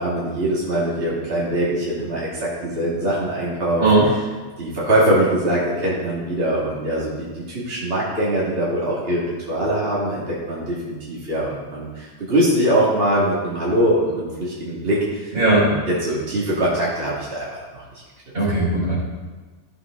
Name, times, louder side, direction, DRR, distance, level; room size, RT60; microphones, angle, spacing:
voice 1, 0.0-4.1 4.6-17.8, right 1 dB, 40° right, -7 dB, 2.0 m, -22 dB
voice 2, 15.3-15.7 18.3-19.0, right 2 dB, 70° right, -6 dB, 4.1 m, -17 dB
14.5 x 6.0 x 3.6 m, 1.3 s
omnidirectional pair, 1.6 m